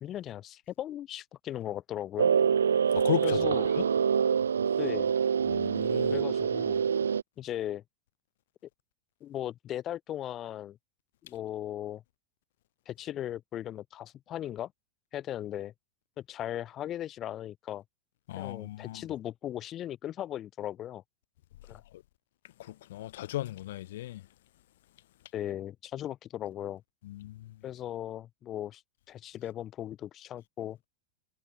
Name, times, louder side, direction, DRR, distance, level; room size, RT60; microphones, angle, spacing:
voice 1, 0.0-2.3 3.2-3.7 4.8-5.1 6.1-6.8 7.4-7.8 9.2-10.8 11.2-12.0 12.8-14.7 15.1-15.7 16.2-17.8 18.4-21.0 21.7-21.8 25.3-26.8 27.6-28.8 29.1-30.8, left 12 dB, 30° left, 1.3 m, -37 dB
sound 1, 2.2-7.2, right 7 dB, 70° right, 0.4 m, -26 dB
voice 2, 2.9-3.4 5.5-6.2 18.3-19.0 22.9-24.2 27.1-27.4, left 14 dB, 55° left, 0.4 m, -35 dB
figure-of-eight pair, 90°, 0 cm